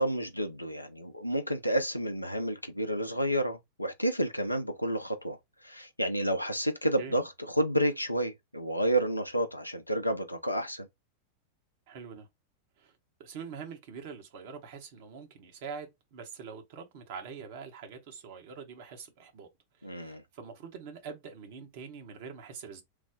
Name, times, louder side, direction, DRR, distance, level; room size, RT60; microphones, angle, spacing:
voice 1, 0.0-5.4 5.6-10.9 19.8-20.2, right 1 dB, 90° left, 0.6 m, -30 dB
voice 2, 11.9-12.3 12.8-19.5 19.8-22.8, right 6 dB, 50° right, 0.9 m, -44 dB
3.3 x 2.0 x 3.5 m
figure-of-eight pair, 90°, 0 cm